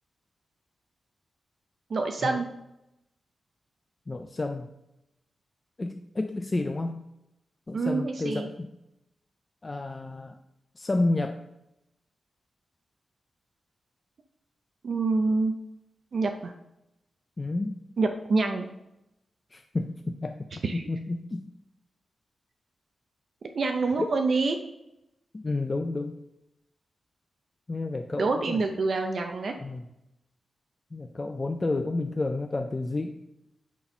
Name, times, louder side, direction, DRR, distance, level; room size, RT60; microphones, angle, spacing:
voice 1, 1.9-2.5 7.7-8.5 14.8-15.6 16.1-16.5 18.0-18.7 20.6-20.8 23.5-24.6 28.2-29.5, right 3 dB, 50° right, 5 dB, 0.5 m, -26 dB
voice 2, 4.1-4.7 5.8-7.0 7.7-8.7 9.6-10.3 10.8-11.4 17.4-17.8 19.5-21.5 24.0-24.1 25.3-26.1 27.7-28.9 29.6-29.8 30.9-33.1, left 2 dB, 20° left, 5 dB, 0.3 m, -30 dB
8.2 x 4.2 x 5.4 m, 0.89 s
wide cardioid pair, 180°, 0 cm